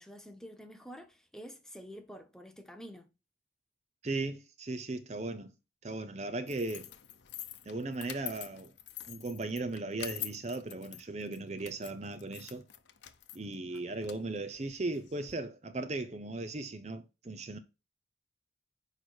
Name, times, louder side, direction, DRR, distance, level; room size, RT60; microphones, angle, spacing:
voice 1, 0.0-3.1, equal, 5° left, 0.8 m, -48 dB
voice 2, 4.0-5.5 5.8-6.9 7.7-8.7 9.1-12.6 13.3-17.6, right 2 dB, 35° right, 0.6 m, -37 dB
sound 1, 6.5-15.3, left 12 dB, 80° left, 0.7 m, -46 dB
6.4 x 4.9 x 4.4 m
head